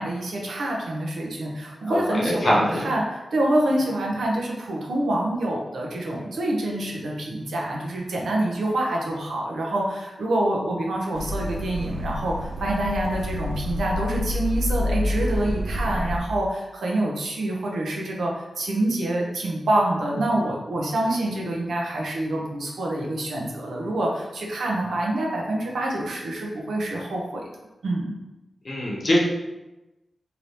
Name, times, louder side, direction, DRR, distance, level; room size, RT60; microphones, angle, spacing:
voice 1, 0.0-27.5 27.8-28.1, right 1 dB, 85° right, -2 dB, 0.7 m, -26 dB
voice 2, 1.8-2.9 28.6-29.2, left 1 dB, 40° left, -5 dB, 0.8 m, -23 dB
sound 1, 11.1-16.2, left 1 dB, 40° right, 0.4 m, -28 dB
2.9 x 2.7 x 3.2 m, 1.0 s
wide cardioid pair, 145°, 0 cm